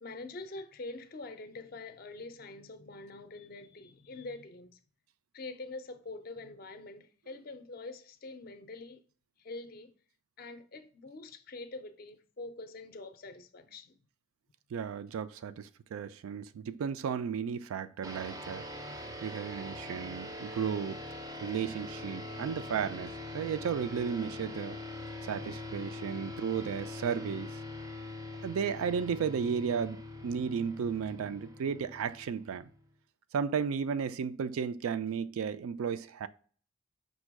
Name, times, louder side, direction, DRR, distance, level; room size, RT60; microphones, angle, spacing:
voice 1, 0.0-4.8 5.3-9.0 9.4-9.9 10.4-14.0, left 3 dB, 45° left, 0.4 m, -45 dB
voice 2, 14.7-21.0 21.4-24.8 25.2-27.6 28.4-32.7 33.3-36.3, right 7 dB, 85° right, 0.3 m, -34 dB
sound 1, 18.0-32.8, left 1 dB, 15° right, 0.4 m, -43 dB
5.2 x 2.2 x 4.6 m
head